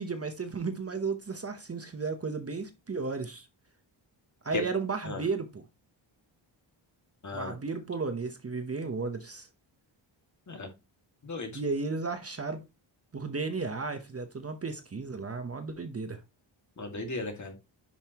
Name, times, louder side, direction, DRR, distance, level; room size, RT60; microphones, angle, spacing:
voice 1, 0.0-3.5 4.4-5.6 7.3-9.5 11.5-12.6 13.1-16.2, right 4 dB, 30° right, 1.0 m, -34 dB
voice 2, 7.2-7.5 10.5-10.7 11.2-11.6 16.8-17.5, left 2 dB, 35° left, 2.2 m, -35 dB
10.5 x 5.5 x 3.0 m
wide cardioid pair, 165°, 47 cm